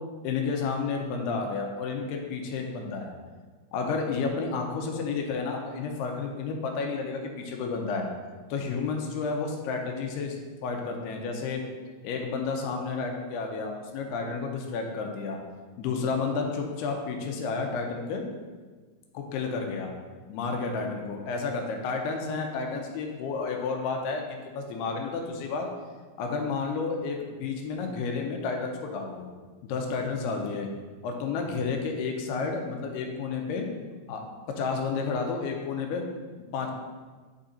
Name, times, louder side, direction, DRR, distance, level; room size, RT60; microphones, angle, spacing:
voice 1, 0.2-3.1 3.7-8.1 8.5-10.4 10.6-11.6 12.0-15.4 15.8-18.2 19.1-19.9 20.3-25.7 26.2-29.3 29.6-30.7 31.0-33.7 34.1-34.2 34.6-36.0 36.5-36.7, left 4 dB, 85° left, 2 dB, 2.8 m, -31 dB
9.2 x 3.8 x 4.2 m, 1.4 s
omnidirectional pair, 4.6 m